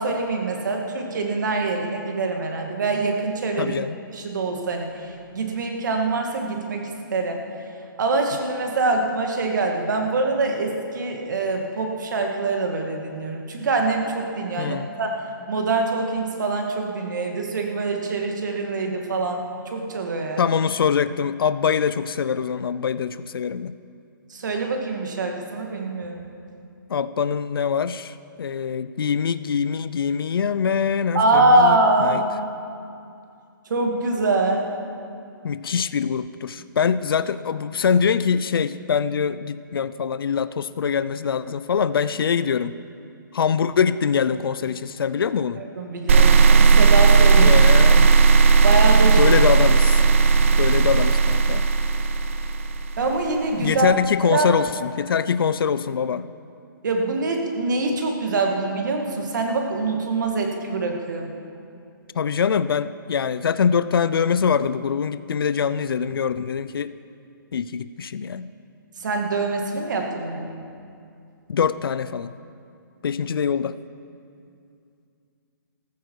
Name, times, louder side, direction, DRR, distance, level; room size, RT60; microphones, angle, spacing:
voice 1, 0.0-3.7 4.1-7.4 8.0-15.2 15.5-20.4 24.3-26.3 31.1-32.2 33.7-34.7 45.6-47.6 47.9-48.1 48.6-49.3 53.0-53.9 54.2-54.5 56.8-61.3 69.0-70.7, right 3 dB, 55° right, 2 dB, 2.0 m, -24 dB
voice 2, 3.6-4.0 14.6-14.9 20.4-23.8 26.9-32.2 35.4-42.7 43.3-45.6 47.4-48.1 49.2-50.0 50.6-51.7 53.6-56.3 62.2-66.9 67.5-68.5 71.5-72.3 73.0-73.8, left 6 dB, 85° left, 14 dB, 0.5 m, -23 dB
sound 1, 46.1-53.2, right 4 dB, 35° right, 0.6 m, -15 dB
14.5 x 14.0 x 4.7 m, 2.5 s
hypercardioid pair, 175°, 12 cm